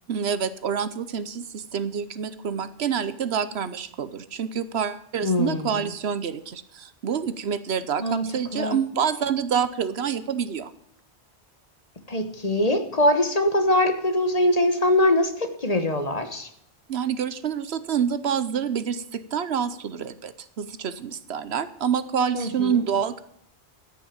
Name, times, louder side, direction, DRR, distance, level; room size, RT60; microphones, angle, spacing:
voice 1, 0.1-10.7 16.9-23.2, right 7 dB, 70° right, 14 dB, 1.1 m, -27 dB
voice 2, 5.2-5.9 8.0-8.8 12.1-16.5 22.3-22.8, left 1 dB, 35° left, 8 dB, 1.4 m, -23 dB
13.0 x 6.5 x 8.6 m, 0.72 s
omnidirectional pair, 1.1 m